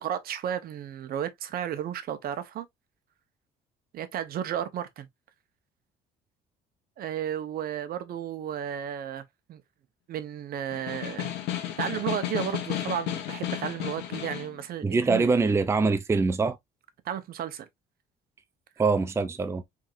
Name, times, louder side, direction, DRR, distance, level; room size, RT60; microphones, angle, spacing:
voice 1, 0.0-2.7 3.9-5.1 7.0-9.2 9.5-9.6 10.1-15.3 17.0-17.7, right 9 dB, 60° right, 0.9 m, -33 dB
Snare drum, 10.7-14.6, left 12 dB, 80° left, 1.3 m, -33 dB
voice 2, 14.8-16.6 18.8-19.6, right 4 dB, 15° right, 0.5 m, -24 dB
4.6 x 3.6 x 2.5 m
cardioid pair, 110°, 17 cm